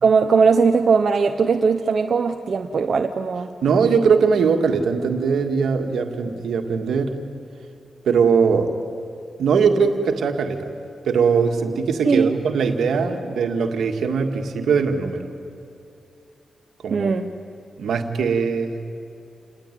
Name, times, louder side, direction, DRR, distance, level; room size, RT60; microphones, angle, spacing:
voice 1, 0.0-3.5 12.0-12.4 16.9-17.3, right 5 dB, 65° right, 4 dB, 1.0 m, -19 dB
voice 2, 3.6-7.2 8.0-8.7 9.4-10.7 11.0-15.3 16.8-17.1 17.8-18.8, right 5 dB, 85° right, 4 dB, 2.0 m, -20 dB
29.0 x 20.0 x 9.4 m, 2.8 s
cardioid pair, 50°, 0 cm